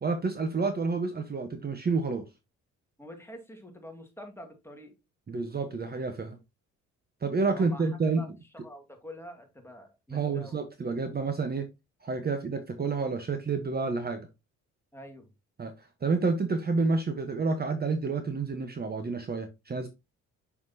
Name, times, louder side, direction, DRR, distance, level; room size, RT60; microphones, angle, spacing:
voice 1, 0.0-2.2 5.3-6.4 7.2-8.2 10.1-11.7 12.0-14.3 15.6-19.9, right 4 dB, 30° right, 1.0 m, -29 dB
voice 2, 3.0-4.9 7.5-7.8 8.2-8.3 8.6-10.6 14.9-15.3, equal, 10° left, 2.0 m, -46 dB
6.2 x 5.9 x 2.7 m
cardioid pair, 90°, 30 cm